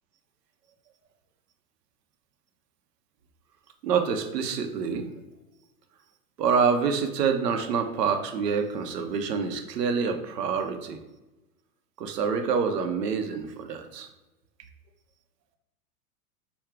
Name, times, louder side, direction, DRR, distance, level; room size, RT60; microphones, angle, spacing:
voice 1, 3.8-5.1 6.4-11.0 12.0-14.1, right 6 dB, 85° right, 6 dB, 0.8 m, -26 dB
5.8 x 2.3 x 3.6 m, 1.0 s
hypercardioid pair, 125°, 47 cm